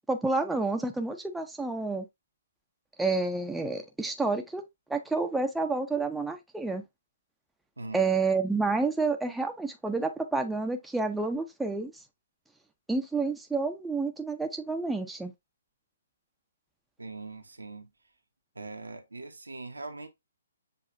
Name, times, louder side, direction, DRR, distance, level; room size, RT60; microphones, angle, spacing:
voice 1, 0.1-2.1 3.0-4.6 4.9-6.8 7.9-11.9 12.9-15.3, right 3 dB, 5° right, 0.5 m, -29 dB
voice 2, 7.8-8.1 17.0-17.9 18.5-20.1, right 3 dB, 85° right, 0.8 m, -41 dB
6.8 x 2.4 x 2.5 m
figure-of-eight pair, 130°, 0 cm